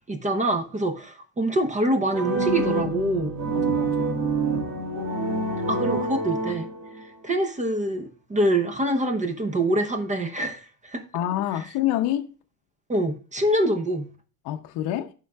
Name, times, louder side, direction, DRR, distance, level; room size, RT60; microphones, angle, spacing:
voice 1, 0.1-3.4 5.7-6.7 7.0-11.0 12.9-14.1, right 1 dB, 15° right, 0.7 m, -25 dB
sound 1, 2.1-7.1, right 2 dB, 65° right, 2.1 m, -27 dB
voice 2, 3.5-4.2 11.1-12.3 14.4-15.1, left 12 dB, 60° left, 0.7 m, -27 dB
11.0 x 3.7 x 2.3 m
supercardioid pair, 115°, 45 cm